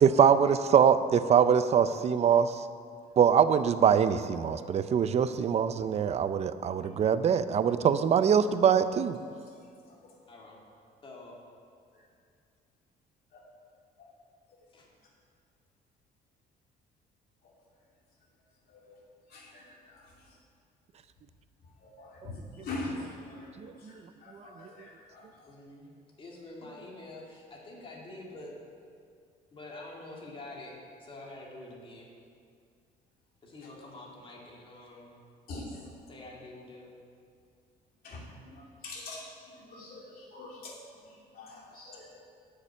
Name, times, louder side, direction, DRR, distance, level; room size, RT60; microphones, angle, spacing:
voice 1, 0.0-2.6 3.2-9.2 23.6-23.9, right 7 dB, 40° right, 13 dB, 0.5 m, -23 dB
voice 2, 10.3-10.6 11.0-11.4 14.7-14.9 25.5-28.5 29.5-32.1 33.4-35.2 36.1-37.0, left 2 dB, 30° left, -3 dB, 2.4 m, -47 dB
voice 3, 19.3-20.2 21.8-25.3 35.5-35.8 38.0-40.7 41.3-42.2, left 2 dB, 60° left, -2 dB, 2.7 m, -43 dB
9.8 x 6.7 x 7.2 m, 2.2 s
cardioid pair, 110°, 17 cm